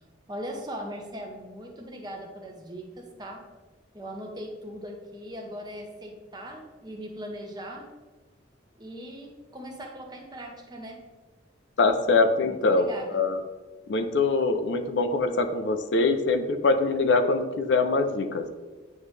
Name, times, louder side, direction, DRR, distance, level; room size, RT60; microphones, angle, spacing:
voice 1, 0.3-3.4 3.9-7.9 8.8-11.0 12.4-13.3, equal, 20° right, 1 dB, 0.8 m, -39 dB
voice 2, 11.8-13.4 13.9-18.5, left 3 dB, 65° left, 7 dB, 0.5 m, -23 dB
9.3 x 3.1 x 3.2 m, 1.2 s
head